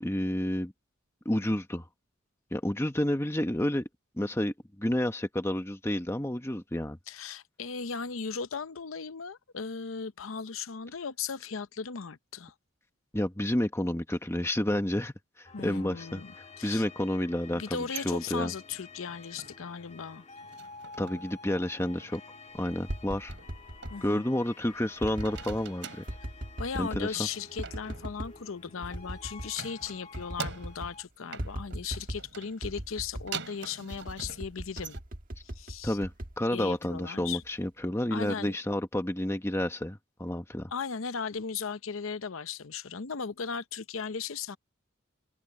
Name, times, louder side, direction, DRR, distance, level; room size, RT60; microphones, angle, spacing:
voice 1, 0.0-0.7 1.2-1.9 2.5-3.9 4.2-7.0 13.1-16.2 16.6-18.5 21.0-22.2 22.5-23.3 24.0-26.0 26.7-27.2 35.8-40.7, left 1 dB, 15° left, 1.1 m, -30 dB
voice 2, 7.1-12.5 15.5-16.3 16.6-16.9 17.5-20.3 23.9-24.2 26.6-35.0 35.4-36.0 36.5-37.4 38.1-38.6 40.7-44.6, left 6 dB, 80° left, 0.7 m, -37 dB
sound 1, 15.4-31.0, left 4 dB, 35° left, 1.7 m, -50 dB
sound 2, 17.6-19.8 20.2-21.4 21.7-22.2 23.3-24.7 25.0-26.2 27.1-29.0 29.5-31.0 31.3-35.0, right 6 dB, 60° right, 7.1 m, -45 dB
sound 3, 22.6-24.0 25.0-25.6 26.1-27.1 27.6-28.4 28.8-29.5 29.8-29.9 30.1-31.0 31.4-32.3 32.6-33.4 33.9-37.0 37.4-37.8, right 1 dB, 40° right, 1.5 m, -39 dB
open air
head